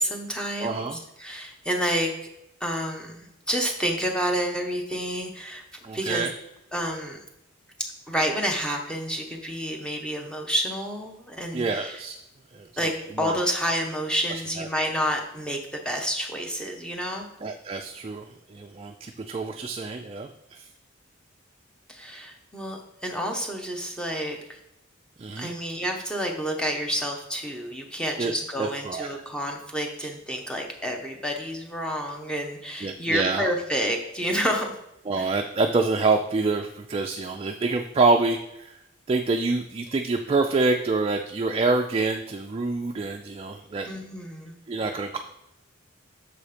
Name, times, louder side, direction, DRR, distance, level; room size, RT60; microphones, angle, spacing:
voice 1, 0.0-2.1 2.6-5.6 5.9-6.3 6.7-7.2 8.1-12.0 12.8-17.3 21.9-24.6 25.4-34.8 35.2-35.3 43.9-44.6, equal, 5° left, 1 dB, 0.8 m, -29 dB
voice 2, 0.6-1.0 5.8-6.3 11.5-12.1 12.5-12.7 13.2-13.3 14.6-14.7 17.4-20.7 25.2-25.5 28.2-28.3 28.6-29.1 32.8-33.5 35.1-38.8 39.1-43.9 44.7-45.2, right 3 dB, 30° right, 4 dB, 0.3 m, -26 dB
6.8 x 4.2 x 4.9 m, 0.85 s
head